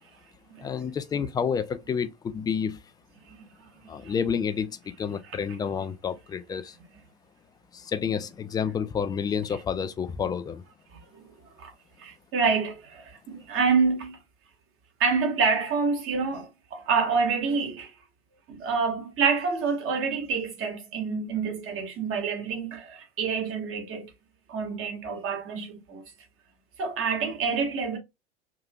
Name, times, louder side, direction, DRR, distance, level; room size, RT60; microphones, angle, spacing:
voice 1, 0.6-2.8 3.9-6.8 7.7-10.6, left 7 dB, 10° left, 0.3 m, -29 dB
voice 2, 10.9-11.2 11.6-11.7 12.0-14.2 15.0-17.9 18.5-24.1 24.5-26.0 26.8-28.0, right 5 dB, 40° right, 1.5 m, -27 dB
4.9 x 2.8 x 2.3 m
figure-of-eight pair, 80°, 34 cm